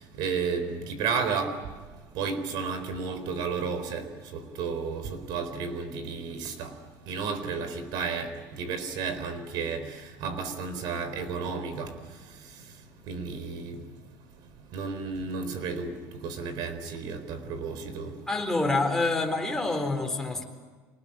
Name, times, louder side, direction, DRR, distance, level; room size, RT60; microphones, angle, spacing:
voice 1, 0.1-1.6 2.1-6.7 7.1-11.9 13.1-13.8 14.7-18.1, right 5 dB, 70° right, 4.2 m, -32 dB
voice 2, 18.3-20.4, left 2 dB, 5° left, 4.0 m, -27 dB
27.0 x 20.0 x 8.9 m
cardioid pair, 125°, 7 cm